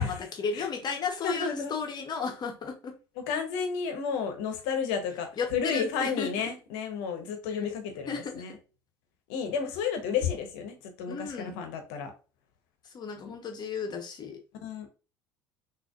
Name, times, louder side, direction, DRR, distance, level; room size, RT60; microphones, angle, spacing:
voice 1, 0.0-2.9 5.4-6.3 8.1-8.4 11.1-11.6 12.9-14.4, left 5 dB, 35° left, 1.2 m, -34 dB
voice 2, 1.2-1.7 3.3-8.6 9.3-12.1 13.3-13.4 14.6-14.9, left 6 dB, 60° left, 1.1 m, -32 dB
6.1 x 2.8 x 2.6 m
figure-of-eight pair, 65°, 12 cm